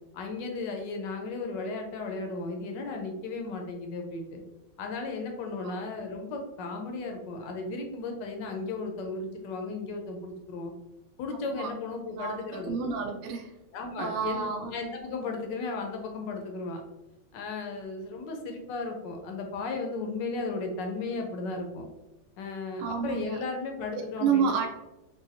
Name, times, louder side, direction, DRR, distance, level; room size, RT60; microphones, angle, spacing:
voice 1, 0.1-4.4 4.8-10.7 11.2-12.8 13.7-16.8 17.3-21.8 22.4-24.7, left 3 dB, 75° left, 3 dB, 1.2 m, -35 dB
voice 2, 11.2-11.7 12.1-13.5 14.0-14.7 22.8-23.4 24.2-24.7, right 6 dB, 75° right, 3 dB, 1.2 m, -30 dB
4.0 x 2.2 x 2.5 m, 0.98 s
omnidirectional pair, 2.0 m